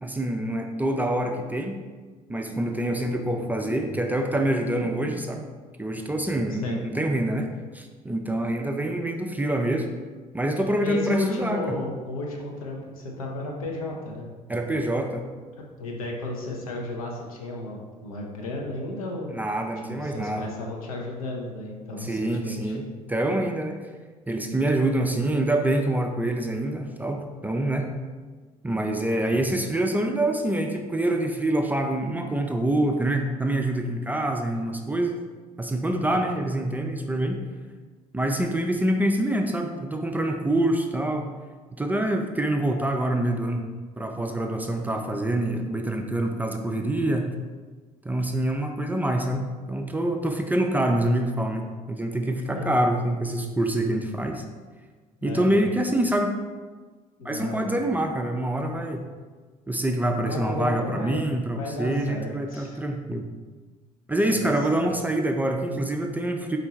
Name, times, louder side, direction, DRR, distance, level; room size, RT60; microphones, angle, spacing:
voice 1, 0.0-1.8 2.3-5.4 5.8-9.9 10.3-11.8 14.5-15.3 19.3-20.5 22.0-23.8 24.3-27.9 28.6-35.1 35.6-37.4 38.1-41.3 41.8-43.6 44.0-47.3 48.0-54.4 55.2-56.3 57.2-59.0 59.7-63.2 64.1-66.6, right 1 dB, 10° right, 3 dB, 0.4 m, -26 dB
voice 2, 10.8-14.3 15.5-19.4 19.9-22.8 29.3-29.4 36.1-36.3 52.5-52.8 55.2-55.7 57.2-57.7 60.2-62.8 64.3-65.0, left 2 dB, 75° left, 0 dB, 0.7 m, -34 dB
4.4 x 2.6 x 4.2 m, 1.4 s
figure-of-eight pair, 50°, 18 cm